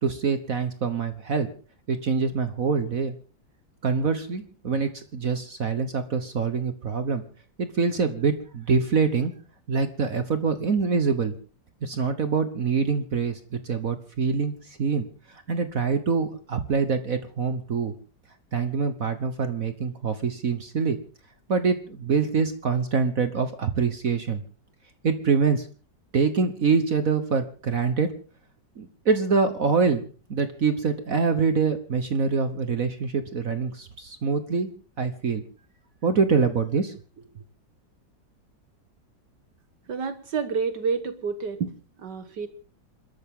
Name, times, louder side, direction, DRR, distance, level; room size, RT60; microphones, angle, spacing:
voice 1, 0.0-1.5 1.9-3.1 3.8-7.2 7.6-9.3 9.7-11.3 11.8-17.9 18.5-21.0 21.5-24.4 25.0-25.7 26.1-28.1 28.8-34.7 35.0-35.4 36.0-36.9, right 5 dB, 50° right, 9 dB, 1.5 m, -25 dB
voice 2, 39.9-42.5, right 5 dB, 65° right, 10 dB, 1.9 m, -29 dB
28.0 x 13.5 x 3.8 m, 0.38 s
omnidirectional pair, 2.0 m